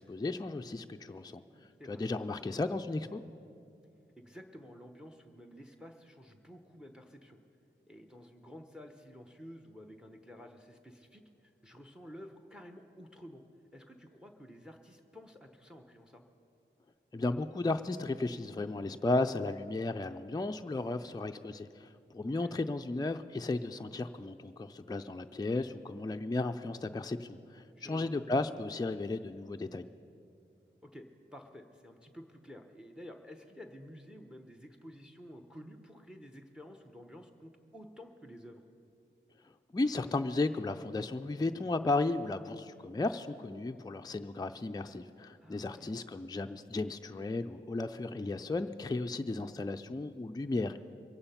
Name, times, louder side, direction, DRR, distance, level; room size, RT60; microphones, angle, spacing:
voice 1, 0.0-1.4 1.9-3.2 17.1-29.8 39.7-50.8, left 2 dB, 20° left, 6 dB, 0.4 m, -34 dB
voice 2, 1.5-2.0 4.2-7.4 7.9-13.4 13.7-16.2 20.8-21.2 22.2-22.6 27.8-28.1 30.8-38.6 45.4-45.9, equal, 5° right, 5 dB, 1.0 m, -51 dB
22.5 x 8.7 x 5.7 m, 2.5 s
wide cardioid pair, 60°, 20 cm